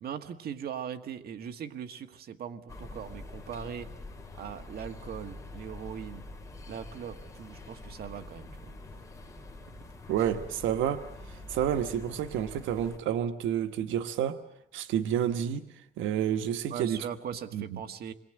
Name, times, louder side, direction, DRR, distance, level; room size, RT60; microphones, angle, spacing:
voice 1, 0.0-3.9 4.3-6.2 6.7-8.7 16.7-18.1, right 8 dB, 50° right, 7 dB, 1.6 m, -40 dB
sound 1, 2.7-13.0, left 2 dB, 15° left, 3.2 m, -45 dB
voice 2, 10.1-14.4 14.7-15.7 16.0-17.0 17.5-17.6, right 9 dB, 85° right, 9 dB, 1.3 m, -29 dB
27.5 x 22.0 x 8.9 m, 0.78 s
cardioid pair, 140°, 20 cm